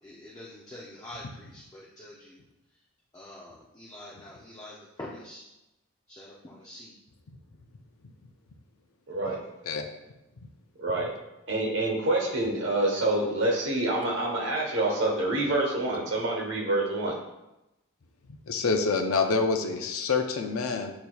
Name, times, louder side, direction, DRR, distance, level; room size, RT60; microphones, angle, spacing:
voice 1, 0.0-2.4 3.1-5.4 6.1-6.9, left 1 dB, 15° left, -6 dB, 0.5 m, -45 dB
voice 2, 9.1-9.4 10.8-11.1 11.5-17.1, right 2 dB, 55° right, -1 dB, 1.1 m, -27 dB
voice 3, 18.5-20.9, left 4 dB, 80° left, 5 dB, 0.5 m, -26 dB
8.0 x 2.9 x 2.3 m, 0.95 s
head